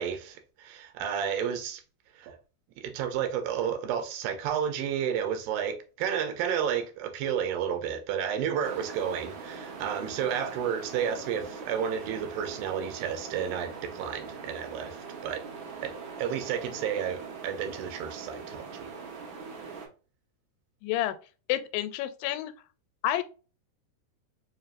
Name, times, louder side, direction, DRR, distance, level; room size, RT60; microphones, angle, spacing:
voice 1, 0.0-1.8 2.2-2.4 2.8-15.4 15.8-18.9, right 8 dB, 85° right, 2.5 m, -31 dB
sound 1, 8.6-19.9, right 5 dB, 65° right, 2.4 m, -42 dB
voice 2, 20.8-21.2 21.5-22.5 23.0-23.2, left 13 dB, 90° left, 2.3 m, -29 dB
5.8 x 2.8 x 2.4 m
omnidirectional pair, 4.0 m